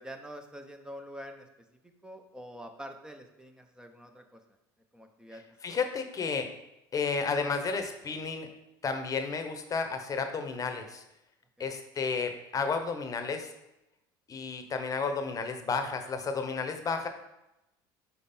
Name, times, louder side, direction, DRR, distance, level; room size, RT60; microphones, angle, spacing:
voice 1, 0.0-1.5 2.0-4.4 4.9-5.4, equal, 5° right, 5 dB, 0.8 m, -45 dB
voice 2, 5.6-6.5 6.9-8.5 8.8-11.0 11.6-13.5 14.3-17.1, left 5 dB, 30° left, 6 dB, 0.9 m, -32 dB
5.2 x 4.6 x 4.3 m, 0.92 s
supercardioid pair, 90°, 11 cm